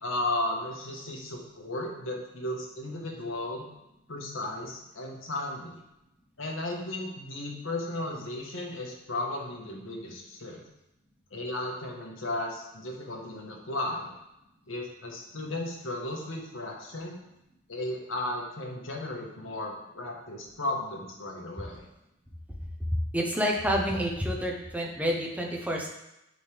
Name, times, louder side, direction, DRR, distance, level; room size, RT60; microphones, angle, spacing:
voice 1, 0.0-3.7 4.1-5.8 6.4-10.6 11.3-14.1 14.7-17.2 17.7-21.8, left 1 dB, 80° left, 0 dB, 1.5 m, -35 dB
voice 2, 23.1-25.9, equal, 5° right, 0 dB, 1.0 m, -28 dB
10.5 x 4.2 x 3.5 m, 0.89 s
head